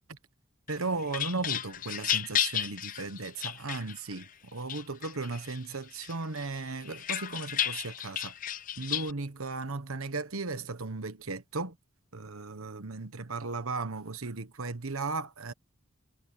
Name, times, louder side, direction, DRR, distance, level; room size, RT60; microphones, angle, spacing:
sound 1, 0.7-4.2 4.7-5.6 6.0-9.1, left 10 dB, 40° left, 0.6 m, -33 dB
voice 1, 0.7-8.3 8.8-11.8 12.1-15.5, right 3 dB, 90° right, 1.3 m, -36 dB
head